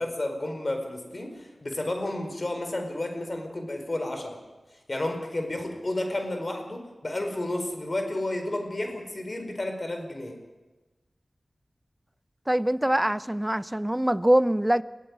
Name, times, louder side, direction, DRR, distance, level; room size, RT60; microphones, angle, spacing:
voice 1, 0.0-4.4 4.9-10.4, left 1 dB, 45° left, 4.7 m, -31 dB
voice 2, 12.5-14.8, right 1 dB, 15° right, 0.8 m, -23 dB
22.0 x 15.5 x 9.6 m
cardioid pair, 45°, 0 cm